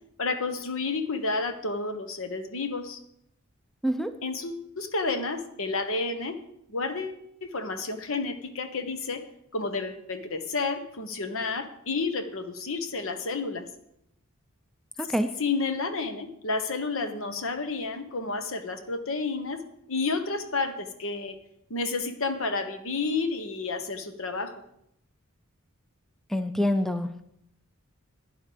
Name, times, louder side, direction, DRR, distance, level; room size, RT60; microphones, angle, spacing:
voice 1, 0.2-3.0 4.2-6.4 6.7-9.2 9.5-13.7 15.4-19.6 19.9-21.4 21.7-24.6, left 3 dB, 65° left, 8 dB, 1.3 m, -30 dB
voice 2, 3.8-4.1 15.0-15.4 26.3-27.2, equal, ahead, 9 dB, 0.5 m, -26 dB
12.0 x 10.0 x 5.1 m, 0.76 s
head